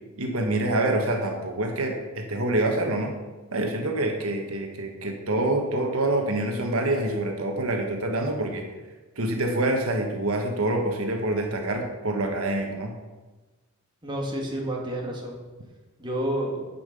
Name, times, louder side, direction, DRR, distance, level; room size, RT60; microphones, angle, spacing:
voice 1, 0.2-3.1 3.5-8.6 9.2-12.9, right 1 dB, 85° right, 3 dB, 1.3 m, -26 dB
voice 2, 14.0-15.4 16.0-16.7, right 1 dB, 25° right, -2 dB, 2.1 m, -29 dB
10.0 x 5.8 x 6.8 m, 1.2 s
head